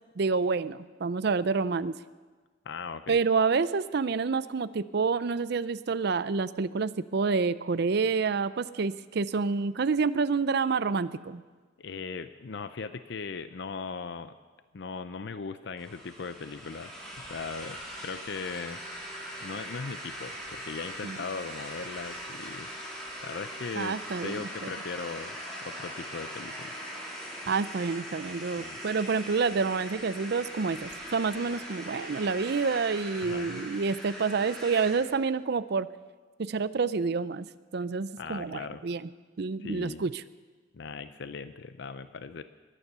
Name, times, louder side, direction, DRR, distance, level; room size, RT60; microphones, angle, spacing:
voice 1, 0.2-1.9 3.1-11.4 21.0-21.2 23.8-24.7 27.5-35.9 36.4-37.5 37.7-39.1 39.4-40.2, right 4 dB, 60° right, 15 dB, 0.5 m, -28 dB
voice 2, 2.7-3.2 11.8-14.3 14.7-16.9 17.2-18.8 19.4-22.7 23.2-24.0 24.2-25.4 25.6-26.7 28.6-28.8 33.2-33.6 38.2-38.8 39.6-40.0 40.7-42.4, left 5 dB, 70° left, 12 dB, 0.6 m, -38 dB
sound 1, 15.8-35.1, equal, 5° left, 4.0 m, -41 dB
21.5 x 9.9 x 6.8 m, 1.4 s
head